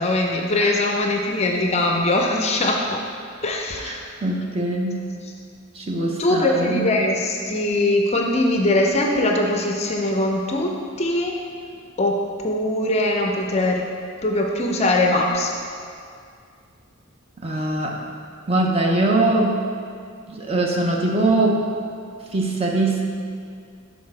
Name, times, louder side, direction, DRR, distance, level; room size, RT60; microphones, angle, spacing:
voice 1, 0.0-3.0 3.4-4.0 6.2-11.3 12.0-12.1 12.4-13.8 14.2-15.6, left 1 dB, 30° left, 1 dB, 0.5 m, -21 dB
voice 2, 3.8-5.0 5.7-6.9 17.4-18.0 18.5-19.6 20.3-21.6 22.3-23.0, right 2 dB, 25° right, 0 dB, 0.6 m, -22 dB
6.6 x 4.0 x 4.8 m, 2.2 s
head